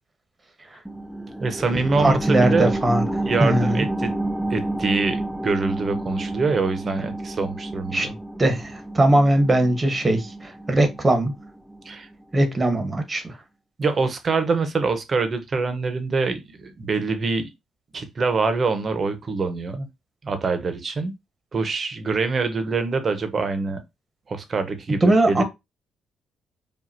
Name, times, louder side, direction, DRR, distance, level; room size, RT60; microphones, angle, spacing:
sound 1, 0.9-12.0 12.4-12.5, right 2 dB, ahead, 0.4 m, -29 dB
voice 1, 1.4-2.7 3.3-4.1 4.5-8.2 11.8-12.1 13.8-17.5 17.9-19.9 20.2-21.1 21.5-23.8 24.3-25.4, right 4 dB, 40° right, 1.0 m, -25 dB
voice 2, 2.0-3.1 3.4-3.8 7.9-8.1 8.4-11.3 12.3-13.3 25.0-25.4, right 1 dB, 20° right, 1.3 m, -20 dB
4.8 x 2.6 x 2.8 m
cardioid pair, 90°, 0 cm